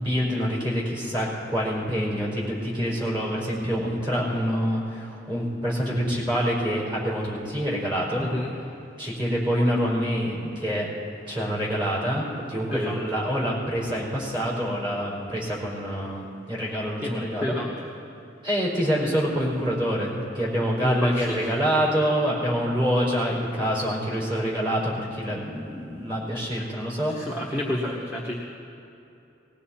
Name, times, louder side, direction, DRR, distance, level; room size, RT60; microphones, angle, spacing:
voice 1, 0.0-8.3 9.0-10.9 11.3-17.5 18.4-27.2, equal, 30° right, -5 dB, 4.5 m, -26 dB
voice 2, 8.2-8.5 12.7-13.0 17.0-17.7 20.8-21.5 27.1-28.4, left 1 dB, 10° right, -4 dB, 1.3 m, -29 dB
20.0 x 16.5 x 4.4 m, 2.8 s
head